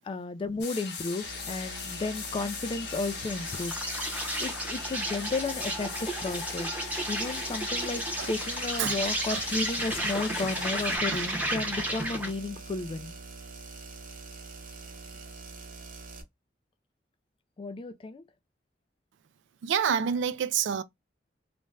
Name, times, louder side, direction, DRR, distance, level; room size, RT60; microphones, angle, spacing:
voice 1, 0.0-3.7 4.4-6.7 7.1-13.1 17.6-18.2, left 3 dB, 30° left, 0.3 m, -33 dB
sound 1, 0.6-11.0, left 6 dB, 70° left, 0.8 m, -39 dB
sound 2, 1.2-16.2, right 4 dB, 50° right, 0.7 m, -44 dB
Insect, 3.0-12.4, right 1 dB, 10° right, 0.7 m, -33 dB
voice 2, 8.8-9.4 9.9-10.1 11.1-11.3 19.6-20.8, right 8 dB, 80° right, 0.3 m, -29 dB
2.5 x 2.1 x 3.2 m
head